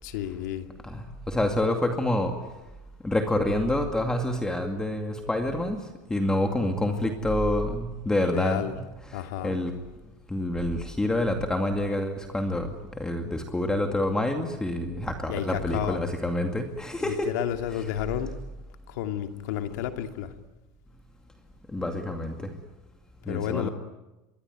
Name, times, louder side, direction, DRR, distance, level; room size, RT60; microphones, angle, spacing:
voice 1, 0.0-0.7 8.3-8.7 9.1-9.6 15.3-16.0 17.0-18.3 18.9-20.3 23.3-23.7, left 11 dB, 80° left, 6 dB, 2.6 m, -31 dB
voice 2, 0.8-2.4 3.0-5.8 6.1-8.8 9.1-9.7 10.3-17.3 21.7-22.5 23.3-23.7, left 1 dB, 10° left, 4 dB, 2.3 m, -27 dB
26.5 x 22.5 x 9.5 m, 1.0 s
supercardioid pair, 145°, 9 cm